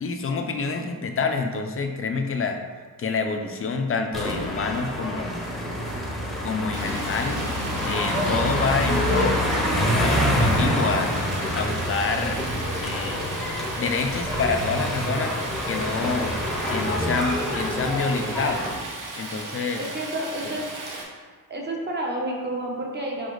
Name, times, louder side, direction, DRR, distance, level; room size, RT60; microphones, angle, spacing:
voice 1, 0.0-2.6 3.0-5.3 6.4-7.4 7.8-9.4 10.0-11.1 11.6-12.4 12.8-13.2 13.8-15.3 15.7-16.3 16.7-18.7 19.2-19.8 20.4-20.5, left 4 dB, 35° left, 5 dB, 0.6 m, -27 dB
sound 1, 4.1-18.7, equal, ahead, 0.9 m, -26 dB
Stream, 6.7-21.0, right 2 dB, 55° right, 1.1 m, -37 dB
voice 2, 19.8-21.0 21.5-23.3, right 1 dB, 30° right, -2 dB, 1.1 m, -30 dB
5.1 x 5.0 x 3.9 m, 1.5 s
wide cardioid pair, 155°, 37 cm